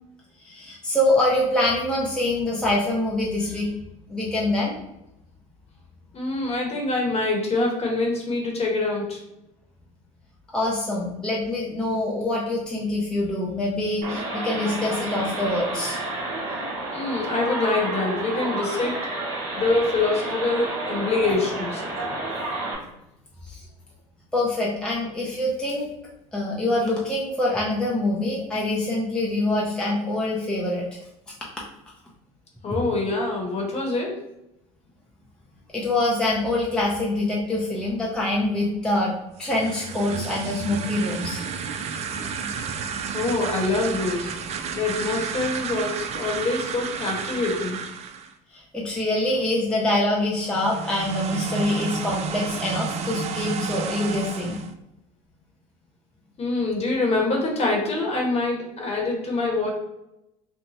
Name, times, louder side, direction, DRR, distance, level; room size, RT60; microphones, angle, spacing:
voice 1, 0.4-3.7 4.1-4.8 10.5-16.0 23.5-23.6 24.3-25.9 26.3-30.8 35.7-41.4 48.5-54.6, left 1 dB, 5° left, -4 dB, 0.6 m, -25 dB
voice 2, 6.1-9.2 16.9-19.0 19.5-21.8 32.6-34.2 43.1-44.3 44.7-47.8 56.4-59.7, left 3 dB, 35° left, 0 dB, 1.0 m, -25 dB
sound 1, 14.0-22.8, right 2 dB, 70° right, 1.1 m, -30 dB
sound 2, 39.3-48.3 50.4-54.7, right 6 dB, 40° right, 0.4 m, -31 dB
2.7 x 2.1 x 3.0 m, 0.86 s
hypercardioid pair, 75°, 17 cm